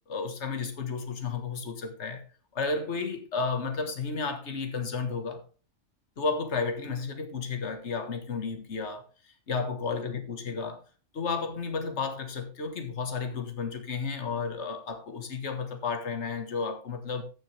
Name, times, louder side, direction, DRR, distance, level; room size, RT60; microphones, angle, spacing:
voice 1, 0.1-2.2 2.6-5.4 6.2-9.1 9.5-10.8 11.1-17.2, left 4 dB, 60° left, 1.8 m, -32 dB
15.0 x 7.1 x 3.4 m
omnidirectional pair, 1.3 m